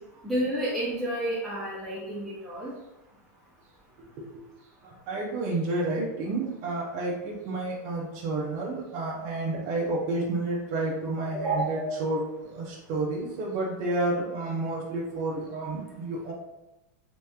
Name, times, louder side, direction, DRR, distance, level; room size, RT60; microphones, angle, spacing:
voice 1, 0.2-2.7 11.3-11.9, right 1 dB, ahead, -8 dB, 0.6 m, -30 dB
voice 2, 4.0-4.4 4.8-16.3, right 2 dB, 35° right, -3 dB, 0.6 m, -30 dB
3.2 x 3.0 x 3.5 m, 0.99 s
supercardioid pair, 165°, 9 cm